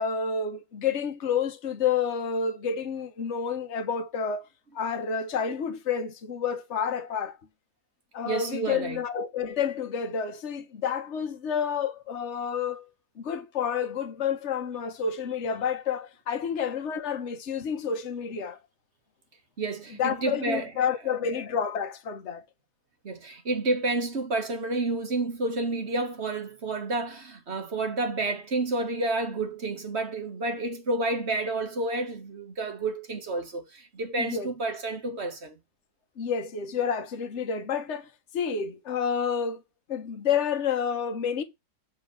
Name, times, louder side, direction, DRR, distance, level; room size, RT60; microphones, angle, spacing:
voice 1, 0.0-4.5 4.7-7.4 8.1-12.9 13.2-18.6 20.0-22.4 34.2-34.5 36.2-39.6 39.9-41.4, left 6 dB, 45° left, 1.4 m, -29 dB
voice 2, 8.2-9.0 19.6-20.7 23.0-35.6, right 2 dB, 40° right, 1.6 m, -30 dB
7.2 x 3.8 x 6.4 m
omnidirectional pair, 1.8 m